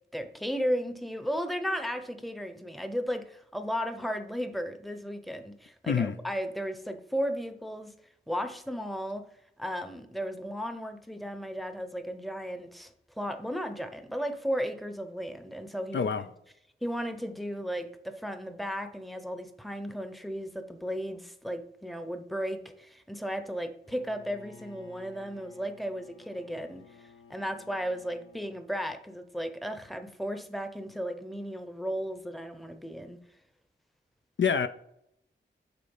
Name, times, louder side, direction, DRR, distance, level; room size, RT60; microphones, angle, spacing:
voice 1, 0.1-7.9 8.3-9.3 9.6-16.1 16.8-33.2, equal, ahead, 0.8 m, -35 dB
voice 2, 5.9-6.2 15.9-16.3 34.4-34.7, left 6 dB, 70° left, 0.5 m, -26 dB
Bowed string instrument, 23.8-28.6, left 3 dB, 90° left, 1.2 m, -54 dB
6.8 x 4.2 x 5.4 m
wide cardioid pair, 90°, 20 cm